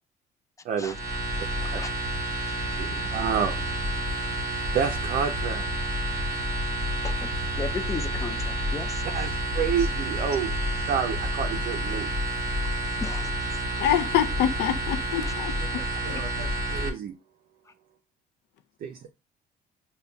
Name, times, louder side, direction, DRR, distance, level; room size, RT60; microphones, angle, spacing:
voice 1, 0.6-1.0 1.7-1.8 2.8-3.6 4.7-5.7 9.1-10.6 10.9-12.1 15.8-17.1 18.8-19.1, right 7 dB, 55° right, 0.5 m, -29 dB
sound 1, 0.9-16.9, right 1 dB, 20° right, 0.9 m, -29 dB
voice 2, 7.6-9.3 13.0-13.3 15.2-15.4 16.1-16.2, left 4 dB, 20° left, 0.3 m, -36 dB
voice 3, 13.8-15.8 16.1-16.2, left 10 dB, 80° left, 0.4 m, -26 dB
5.3 x 2.2 x 2.2 m
cardioid pair, 110°, 17 cm